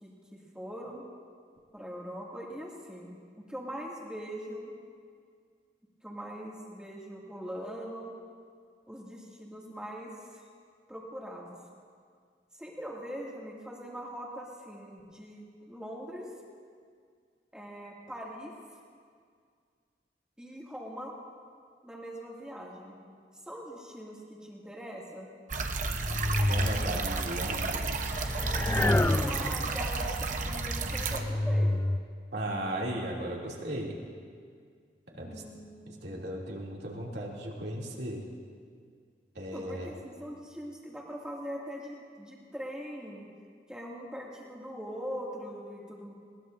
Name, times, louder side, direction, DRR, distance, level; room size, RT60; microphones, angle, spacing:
voice 1, 0.0-1.0 1.7-4.7 6.0-8.1 8.9-10.4 10.9-11.6 12.6-16.3 17.5-18.5 20.4-21.1 21.8-23.0 23.4-25.3 28.8-31.8 35.1-35.9 39.4-43.3 43.7-46.1, equal, 5° right, -4 dB, 2.3 m, -42 dB
sound 1, 25.5-31.2, right 3 dB, 45° right, 0.9 m, -32 dB
sound 2, 25.8-27.2 28.1-29.9 30.5-32.0, left 1 dB, 15° left, 0.3 m, -29 dB
voice 2, 26.5-28.2 32.3-34.0 35.2-35.3 35.9-38.2 39.3-39.9, right 1 dB, 70° right, -3 dB, 2.8 m, -36 dB
21.5 x 19.5 x 2.6 m, 2.1 s
head